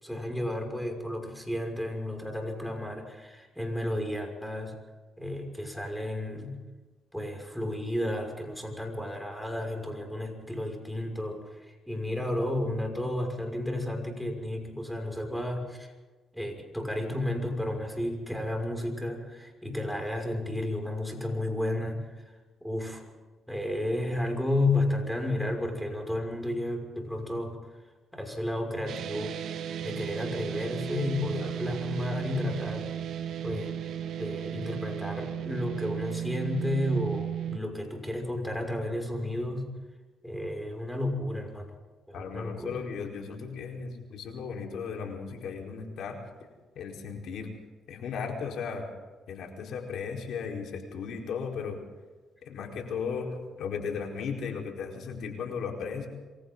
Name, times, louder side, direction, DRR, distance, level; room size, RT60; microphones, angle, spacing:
voice 1, 0.0-4.7 5.2-6.6 7.1-15.9 16.3-22.3 22.6-23.0 23.5-27.6 28.1-29.4 29.8-32.9 33.4-33.8 34.2-39.7 40.2-41.8 42.1-42.8, left 1 dB, ahead, 2 dB, 6.3 m, -32 dB
sound 1, 28.9-37.6, right 9 dB, 75° right, 1.7 m, -35 dB
voice 2, 42.1-46.2 46.8-47.5 47.9-48.8 49.3-51.8 52.4-56.1, left 6 dB, 75° left, 1 dB, 4.5 m, -36 dB
28.0 x 23.5 x 4.0 m, 1.3 s
cardioid pair, 90°, 0 cm